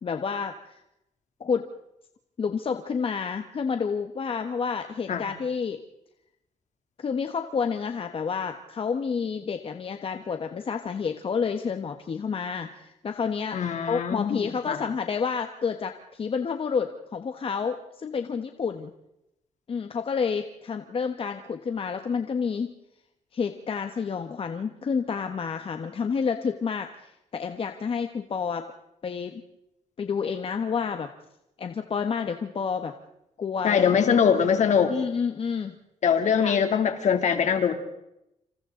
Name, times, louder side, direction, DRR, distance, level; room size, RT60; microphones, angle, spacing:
voice 1, 0.0-0.8 1.4-1.7 2.4-5.8 7.0-13.6 13.9-18.9 19.7-22.7 23.3-28.7 29.0-29.4 30.0-31.1 31.6-32.9 33.4-33.9 34.9-35.7 36.4-36.6, left 6 dB, 45° left, 7 dB, 1.3 m, -29 dB
voice 2, 13.5-14.8 33.6-34.9 36.0-37.7, left 7 dB, 65° left, 6 dB, 2.9 m, -22 dB
28.0 x 27.0 x 3.9 m, 0.84 s
cardioid pair, 130°, 13 cm